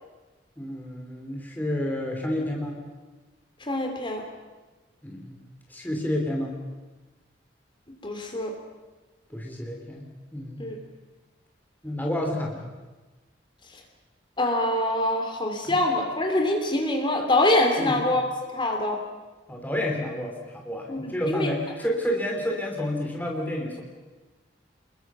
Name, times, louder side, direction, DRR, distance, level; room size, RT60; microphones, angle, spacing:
voice 1, 0.6-2.8 5.0-5.4 5.7-6.6 9.3-10.7 11.8-12.7 15.6-15.8 17.8-18.0 19.5-23.8, left 1 dB, 10° left, 0 dB, 2.9 m, -30 dB
voice 2, 3.6-4.2 8.0-8.5 10.6-10.8 14.4-18.2 18.5-19.0 20.9-21.5, left 1 dB, 25° left, 3 dB, 3.1 m, -24 dB
28.0 x 21.5 x 6.2 m, 1.2 s
head